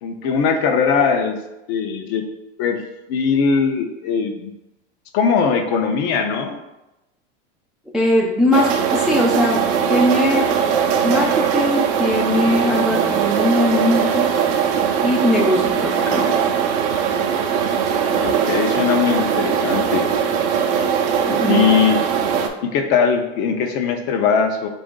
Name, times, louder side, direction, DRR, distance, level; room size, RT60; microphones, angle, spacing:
voice 1, 0.0-1.4 1.7-2.2 2.6-2.8 3.1-4.5 5.1-6.6 18.1-20.1 21.5-22.0 22.6-24.7, left 6 dB, 55° left, 5 dB, 0.6 m, -20 dB
voice 2, 7.9-9.6 9.9-10.5 11.0-14.3 15.0-16.4 21.3-21.6, left 1 dB, ahead, -2 dB, 0.3 m, -20 dB
sound 1, 8.5-22.5, right 7 dB, 55° right, 0.5 m, -20 dB
4.1 x 2.5 x 3.7 m, 0.96 s
supercardioid pair, 125°, 31 cm